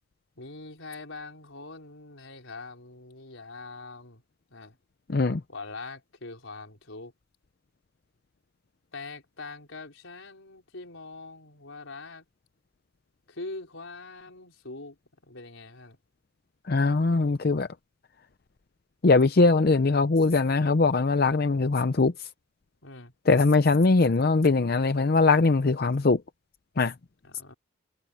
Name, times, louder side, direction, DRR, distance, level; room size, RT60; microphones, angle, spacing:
voice 1, 0.4-4.2 4.5-4.8 5.5-7.1 8.9-12.3 13.3-15.0 15.2-16.0 22.8-23.1 27.2-27.5, left 3 dB, 80° left, 4.2 m, -43 dB
voice 2, 5.1-5.4 16.6-17.7 19.0-22.3 23.3-26.2 26.8-26.9, left 3 dB, 50° left, 0.6 m, -21 dB
head